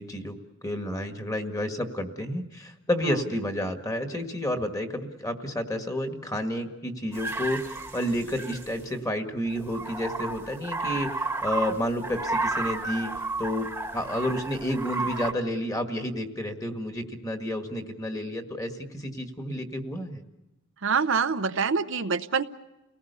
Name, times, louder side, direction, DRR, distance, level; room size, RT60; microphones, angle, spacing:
voice 1, 0.0-13.1 13.4-13.7 13.9-20.2, left 1 dB, 15° left, 6 dB, 1.8 m, -30 dB
Gray Cranes, 7.1-8.8 9.5-15.3, right 3 dB, 10° right, 1.4 m, -32 dB
voice 2, 20.8-22.4, right 5 dB, 60° right, 10 dB, 0.7 m, -25 dB
30.0 x 18.5 x 6.9 m, 0.99 s
head